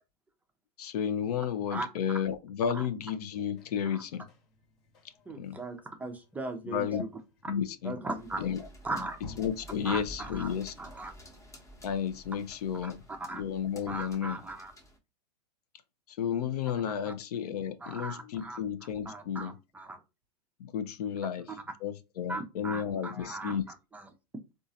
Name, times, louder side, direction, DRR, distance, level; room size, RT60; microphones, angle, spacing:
voice 1, 0.8-4.3 5.4-5.6 6.6-7.0 7.5-8.0 8.4-8.6 9.2-10.7 11.8-13.0 13.3-14.4 16.1-19.6 20.6-23.7, left 8 dB, 70° left, 0.6 m, -32 dB
sound 1, 3.3-9.6, left 4 dB, 45° left, 1.3 m, -54 dB
voice 2, 5.3-7.1 7.8-8.4 8.8-9.2 9.8-10.5 10.8-11.1 12.8-13.5 13.9-14.7 17.8-18.6 19.1-20.0 22.3-23.6 23.9-24.1, right 2 dB, 5° right, 0.5 m, -38 dB
sound 2, 8.1-15.0, equal, 15° left, 0.9 m, -51 dB
3.8 x 2.4 x 2.7 m
hypercardioid pair, 125°, 21 cm